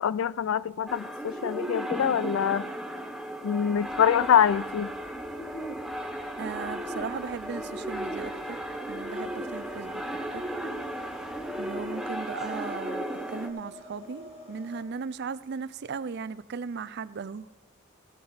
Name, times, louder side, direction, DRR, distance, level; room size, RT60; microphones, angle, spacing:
voice 1, 0.0-2.7 3.4-4.9, left 8 dB, 65° left, 0.3 m, -25 dB
sound 1, 0.9-13.5, equal, ahead, 0.7 m, -35 dB
sound 2, 3.7-14.8, equal, 30° left, 3.3 m, -49 dB
voice 2, 6.4-8.6 8.9-10.0 10.3-10.4 11.6-17.5, right 5 dB, 50° right, 0.4 m, -37 dB
15.5 x 5.7 x 5.6 m
head